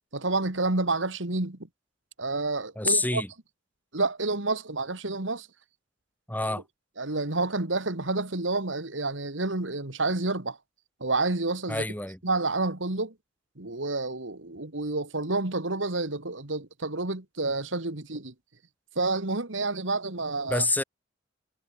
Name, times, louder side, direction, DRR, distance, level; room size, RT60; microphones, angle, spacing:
voice 1, 0.1-1.6 2.2-3.2 3.9-5.5 7.0-10.6 11.0-11.8 12.2-13.1 13.6-18.3 19.0-20.7, right 3 dB, 80° right, 2.4 m, -29 dB
voice 2, 2.7-3.3 6.3-6.6 11.7-12.2 20.5-20.8, left 2 dB, 10° left, 6.8 m, -27 dB
head